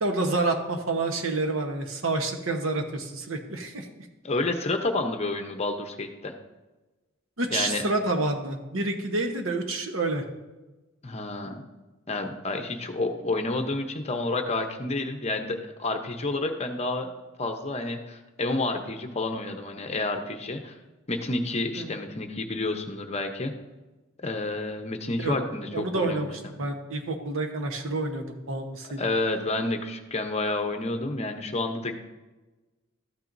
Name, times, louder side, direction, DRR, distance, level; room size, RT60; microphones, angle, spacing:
voice 1, 0.0-3.9 7.4-10.2 21.7-22.0 25.2-25.4 25.7-29.1, right 2 dB, 75° right, 4 dB, 1.1 m, -28 dB
voice 2, 4.2-6.3 7.5-7.8 11.0-11.6 12.1-17.1 17.4-20.8 21.1-23.5 24.2-26.3 29.0-32.0, left 2 dB, 30° left, 6 dB, 0.8 m, -29 dB
13.0 x 8.9 x 2.7 m, 1.1 s
head